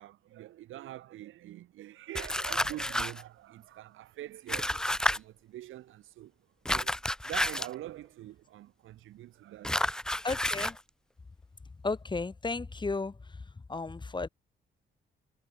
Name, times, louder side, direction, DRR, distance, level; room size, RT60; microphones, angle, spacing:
voice 1, 0.0-6.5 6.7-7.0 7.2-9.8, right 14 dB, 85° right, 3.5 m, -45 dB
sound 1, 2.1-3.2 4.5-5.2 6.7-7.7 9.6-10.8, left 1 dB, 5° left, 0.6 m, -30 dB
voice 2, 10.2-10.8 11.8-13.2 13.7-14.3, left 3 dB, 25° left, 1.8 m, -33 dB
cardioid pair, 90°, 20 cm